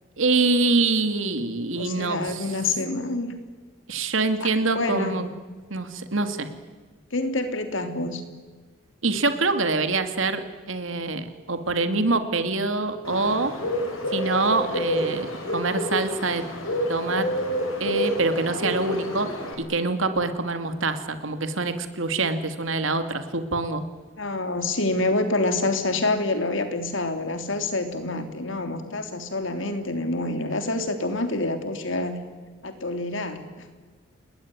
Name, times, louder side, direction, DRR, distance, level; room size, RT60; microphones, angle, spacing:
voice 1, 0.2-2.5 3.9-5.3 5.7-6.5 9.0-13.5 14.1-16.5 16.9-17.3 17.8-23.8, right 3 dB, 75° right, 8 dB, 2.5 m, -25 dB
voice 2, 1.8-3.3 4.4-5.2 7.1-8.2 24.2-32.2 32.6-33.4, left 2 dB, 70° left, 7 dB, 3.2 m, -27 dB
Bird, 13.0-19.5, equal, 85° left, 6.6 m, -28 dB
29.0 x 20.0 x 9.7 m, 1.4 s
head